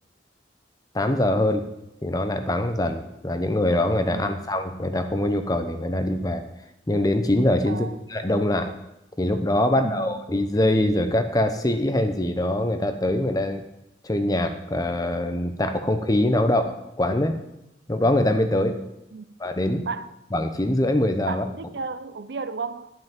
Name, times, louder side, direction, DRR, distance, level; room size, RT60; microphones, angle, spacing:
voice 1, 0.9-1.7 2.0-6.4 6.9-8.7 9.2-13.6 14.0-17.4 17.9-18.8 19.4-19.9 20.3-21.4, left 1 dB, 20° left, 0.8 m, -23 dB
voice 2, 9.7-10.2 19.1-19.3 19.8-20.1 21.2-22.9, right 4 dB, 70° right, 0.6 m, -34 dB
10.5 x 5.8 x 7.3 m
head